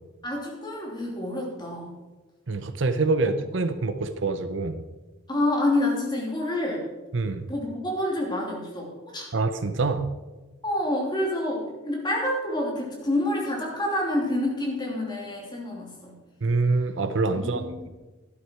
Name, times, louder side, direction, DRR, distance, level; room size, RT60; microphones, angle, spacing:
voice 1, 0.2-1.9 3.2-3.3 5.3-6.8 7.5-9.3 10.6-16.2 17.3-17.9, left 1 dB, 20° left, -2 dB, 3.0 m, -28 dB
voice 2, 2.5-4.8 7.1-7.5 9.3-10.1 16.4-17.9, right 3 dB, 65° right, 10 dB, 0.8 m, -25 dB
12.5 x 11.5 x 4.6 m, 1.2 s
head